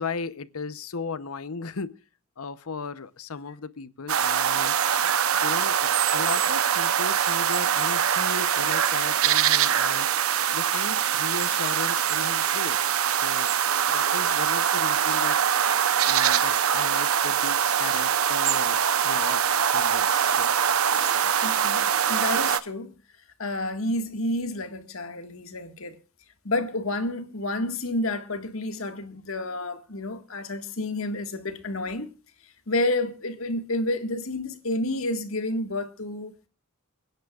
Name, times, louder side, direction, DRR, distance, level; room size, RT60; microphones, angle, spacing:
voice 1, 0.0-2.0 2.4-4.8 5.4-12.8 13.1-15.7 16.1-20.5 20.9-21.2, left 4 dB, 85° left, 0.8 m, -36 dB
sound 1, 4.1-22.6, right 8 dB, 75° right, 0.8 m, -23 dB
voice 2, 21.4-23.0 23.4-26.0 26.5-32.1 32.7-36.5, left 2 dB, 70° left, 1.7 m, -30 dB
30.0 x 10.0 x 2.4 m
head